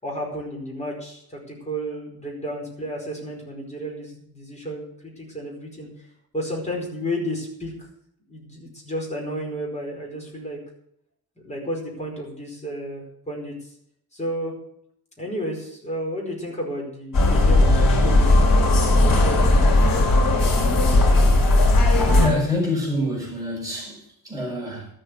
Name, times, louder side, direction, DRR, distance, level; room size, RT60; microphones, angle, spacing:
voice 1, 0.0-5.9 6.3-7.7 8.3-10.6 11.4-13.5 14.1-14.5 15.2-19.5, equal, 20° left, 4.8 m, -32 dB
sound 1, 17.1-22.3, left 2 dB, 65° left, 3.8 m, -17 dB
voice 2, 22.1-24.9, left 2 dB, 10° right, 6.5 m, -26 dB
13.0 x 8.0 x 8.0 m
wide cardioid pair, 170°, 36 cm